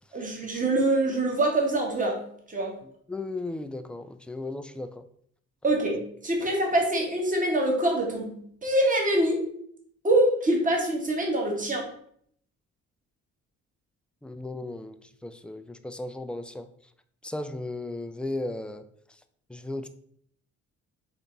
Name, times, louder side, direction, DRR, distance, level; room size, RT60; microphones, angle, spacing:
voice 1, 0.1-2.2 2.5-2.8 5.6-9.4 10.0-11.9, right 1 dB, 25° right, 0 dB, 1.4 m, -25 dB
voice 2, 3.1-5.0 14.2-16.7 17.2-18.8 19.5-19.9, left 2 dB, 5° left, 9 dB, 0.3 m, -35 dB
3.9 x 3.5 x 3.9 m, 0.65 s
cardioid pair, 90°, 30 cm